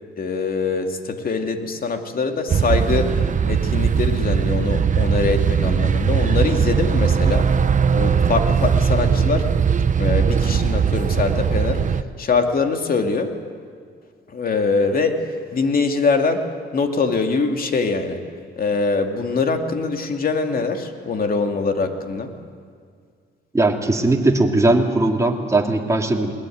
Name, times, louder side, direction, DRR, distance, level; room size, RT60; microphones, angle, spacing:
voice 1, 0.2-3.1 3.5-7.5 7.9-9.5 10.0-11.8 12.2-13.3 14.3-15.2 15.5-16.4 16.7-18.2 18.6-22.3, left 4 dB, 45° left, 5 dB, 2.6 m, -23 dB
sound 1, 2.5-12.0, right 7 dB, 40° right, 0.9 m, -19 dB
voice 2, 23.5-26.3, right 2 dB, 15° right, 1 dB, 2.8 m, -19 dB
21.0 x 20.0 x 9.4 m, 2.1 s
cardioid pair, 90°, 20 cm